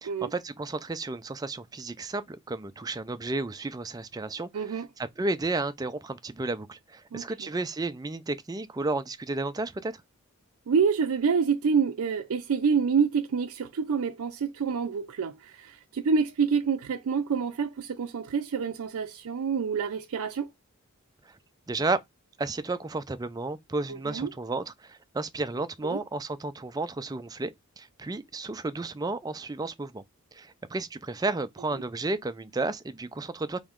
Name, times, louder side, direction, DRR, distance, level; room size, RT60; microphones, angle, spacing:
voice 1, 0.0-10.0 21.3-21.4 21.7-22.0 22.4-30.0 30.3-33.6, right 3 dB, 15° right, 0.4 m, -32 dB
voice 2, 4.5-4.9 7.1-7.5 10.7-20.5 23.9-24.3 25.8-26.0, right 6 dB, 80° right, 0.4 m, -27 dB
4.2 x 3.0 x 3.6 m
head